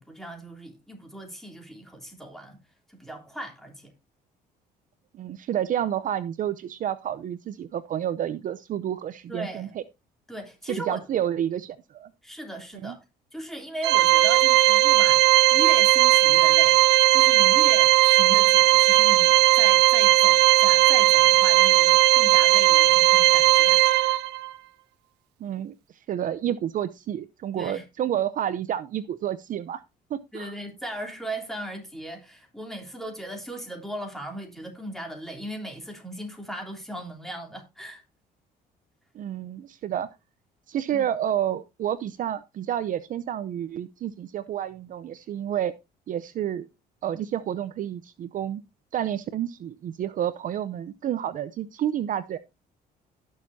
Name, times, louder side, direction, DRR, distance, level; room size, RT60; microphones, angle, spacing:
voice 1, 0.0-2.6 2.9-3.9 9.3-9.7 10.3-11.0 12.2-13.0 13.3-16.8 17.1-24.2 27.6-27.9 30.3-38.0 40.9-41.1, right 1 dB, ahead, 3.3 m, -37 dB
voice 2, 5.1-9.7 10.7-12.1 12.8-13.0 25.4-25.7 26.1-29.8 30.1-30.5 39.1-40.1 40.7-45.7 46.1-46.7 47.0-48.6 48.9-52.4, right 10 dB, 50° right, 0.6 m, -29 dB
Organ, 13.8-24.5, right 18 dB, 90° right, 0.7 m, -17 dB
17.0 x 6.6 x 2.7 m
cardioid pair, 110°, 17 cm